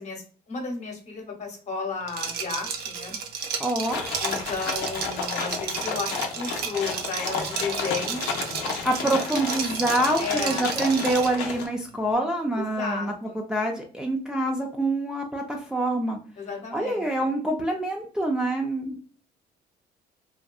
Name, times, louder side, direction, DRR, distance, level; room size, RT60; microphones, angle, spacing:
voice 1, 0.0-3.2 4.2-8.2 10.2-10.7 12.6-13.5 16.4-17.0, left 4 dB, 45° left, 2 dB, 0.9 m, -33 dB
Liquid, 2.1-11.4, right 6 dB, 70° right, 0.6 m, -33 dB
voice 2, 3.6-4.0 8.8-16.2 16.7-19.0, right 1 dB, 5° right, 0 dB, 0.4 m, -26 dB
sound 1, 3.8-11.7, left 5 dB, 85° left, 0.5 m, -32 dB
2.7 x 2.3 x 2.2 m, 0.42 s
cardioid pair, 110°, 17 cm